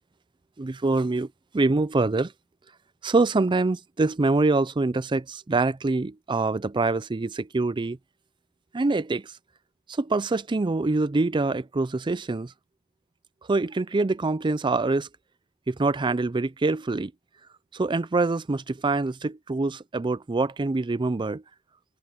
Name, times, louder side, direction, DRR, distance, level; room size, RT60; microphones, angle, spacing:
voice 1, 0.6-1.3 1.5-2.3 3.0-8.0 8.7-9.3 9.9-12.5 13.5-15.1 15.7-17.1 17.7-21.4, right 3 dB, 20° right, 0.4 m, -25 dB
head